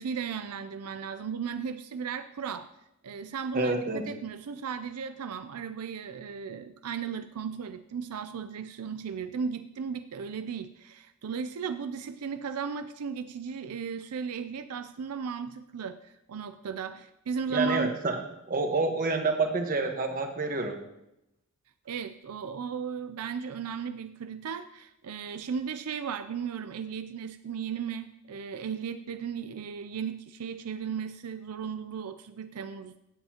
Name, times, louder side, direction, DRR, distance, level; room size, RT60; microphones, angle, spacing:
voice 1, 0.0-2.7 3.0-17.9 21.9-32.9, right 6 dB, 85° right, 10 dB, 0.5 m, -36 dB
voice 2, 3.5-4.0 17.5-18.2 18.5-20.8, right 3 dB, 40° right, 4 dB, 1.3 m, -28 dB
16.5 x 8.0 x 2.9 m, 0.85 s
head